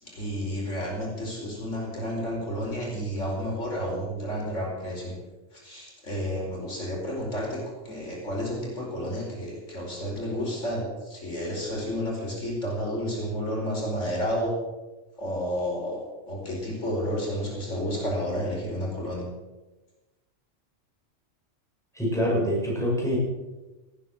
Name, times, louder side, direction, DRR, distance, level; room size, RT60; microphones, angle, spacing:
voice 1, 0.0-5.1 5.5-14.5 15.2-19.3, equal, 85° left, -2 dB, 5.3 m, -31 dB
voice 2, 21.9-23.2, equal, ahead, -4 dB, 7.1 m, -25 dB
17.5 x 9.8 x 7.7 m, 1.1 s
omnidirectional pair, 1.2 m